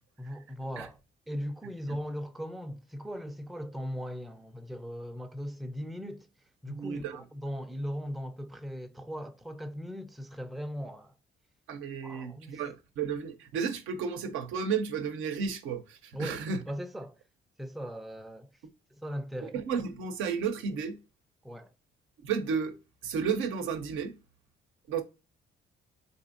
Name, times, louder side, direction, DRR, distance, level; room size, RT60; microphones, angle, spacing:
voice 1, 0.2-1.0 1.3-6.3 6.6-11.1 12.0-12.7 16.1-17.2 17.6-18.5 19.0-19.6 21.4-21.7, equal, ahead, 0.4 m, -39 dB
voice 2, 6.7-7.2 11.7-16.6 19.4-21.0 22.2-22.7 23.0-24.1 24.9-25.0, right 6 dB, 90° right, 0.7 m, -32 dB
3.9 x 2.6 x 2.5 m
cardioid pair, 90°, 20 cm